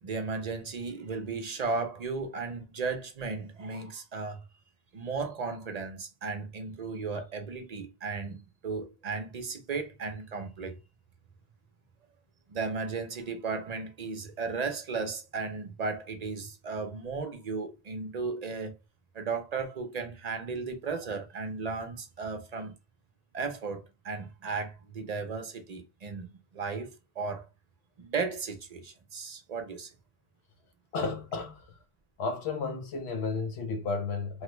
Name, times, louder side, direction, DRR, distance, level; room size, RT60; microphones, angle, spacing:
voice 1, 0.0-4.4 4.9-10.8 12.5-18.7 19.1-22.7 23.3-27.5 28.0-29.9, right 4 dB, 45° right, 0.6 m, -35 dB
voice 2, 30.9-31.7 32.2-34.4, left 4 dB, 80° left, 0.9 m, -32 dB
3.1 x 2.1 x 3.0 m
omnidirectional pair, 1.1 m